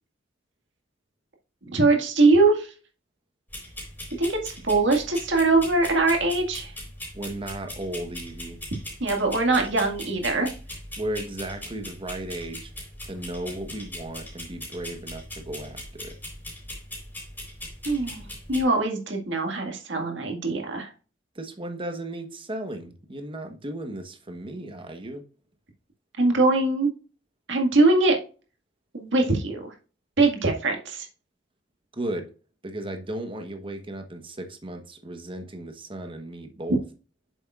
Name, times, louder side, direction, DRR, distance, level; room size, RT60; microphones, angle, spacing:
voice 1, 1.6-2.7 4.2-6.7 9.0-10.5 17.8-20.9 26.2-26.9 27.5-28.2 28.9-29.7 30.2-31.1, right 3 dB, 65° right, 2.0 m, -22 dB
sound 1, 3.5-18.6, left 1 dB, 10° left, 4.0 m, -40 dB
voice 2, 7.1-8.6 11.0-12.7 13.0-16.2 21.3-25.2 31.9-32.3 32.6-36.8, right 1 dB, 25° right, 1.1 m, -35 dB
8.6 x 7.1 x 2.4 m
head